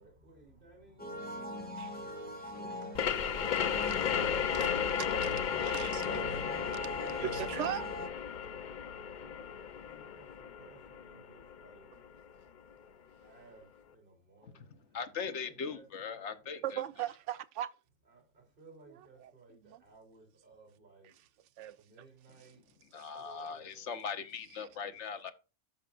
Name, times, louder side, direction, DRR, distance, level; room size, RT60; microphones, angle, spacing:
voice 1, 0.0-4.8 5.2-5.7 6.5-7.4 9.2-9.6 9.8-11.9 13.2-15.0 15.3-16.5 18.1-21.2 21.8-22.6 23.2-24.0, right 2 dB, 45° right, 3.5 m, -59 dB
sound 1, 1.0-8.1, left 1 dB, 5° left, 2.2 m, -41 dB
voice 2, 1.8-2.2 3.8-5.3 5.6-6.2 6.7-6.8 7.1-7.9 16.6-17.7 19.2-19.3 19.7-19.8 21.6-21.8 23.0-23.1, right 12 dB, 75° right, 0.9 m, -39 dB
sound 2, 2.9-12.3, left 8 dB, 55° left, 0.6 m, -35 dB
voice 3, 14.4-16.8 22.9-25.3, left 6 dB, 70° left, 1.3 m, -40 dB
12.5 x 5.6 x 2.5 m
omnidirectional pair, 1.3 m